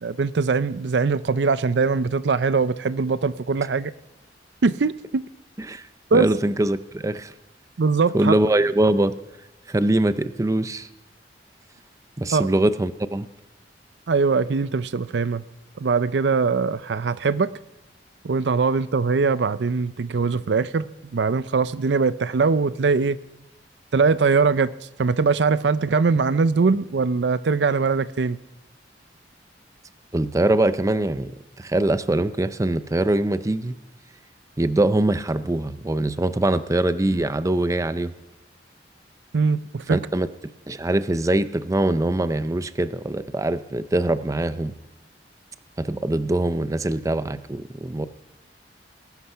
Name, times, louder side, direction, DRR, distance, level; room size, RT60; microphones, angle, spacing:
voice 1, 0.0-3.9 4.6-5.2 6.1-6.3 7.8-8.3 12.3-12.5 14.1-15.4 15.8-17.5 18.2-20.9 21.1-23.2 23.9-24.7 25.0-28.4 39.3-40.0, right 4 dB, 75° right, 15 dB, 0.5 m, -21 dB
voice 2, 6.1-7.3 8.1-9.1 9.7-10.9 12.2-13.3 30.1-31.3 31.6-33.7 34.6-38.1 39.9-40.3 40.7-44.7 45.8-48.1, right 1 dB, 20° right, 13 dB, 0.5 m, -23 dB
20.0 x 12.0 x 5.7 m, 1.0 s
head